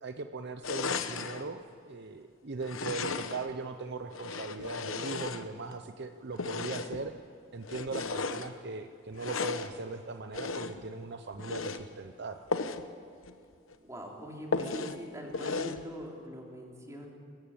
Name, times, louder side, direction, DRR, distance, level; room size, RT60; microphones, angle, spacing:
voice 1, 0.0-7.1 7.5-12.4, right 4 dB, 55° right, 7 dB, 0.8 m, -39 dB
sound 1, 0.6-1.4 2.6-3.5 4.1-5.8 6.3-7.1 7.6-8.5 9.1-9.7 10.3-10.9 11.3-11.8 12.5-12.9 13.2-13.3 13.7-13.8 14.5-15.0 15.3-15.8, left 4 dB, 75° left, 1.0 m, -35 dB
voice 2, 13.8-17.1, equal, 15° right, 0 dB, 3.1 m, -42 dB
22.5 x 14.5 x 8.7 m, 2.4 s
head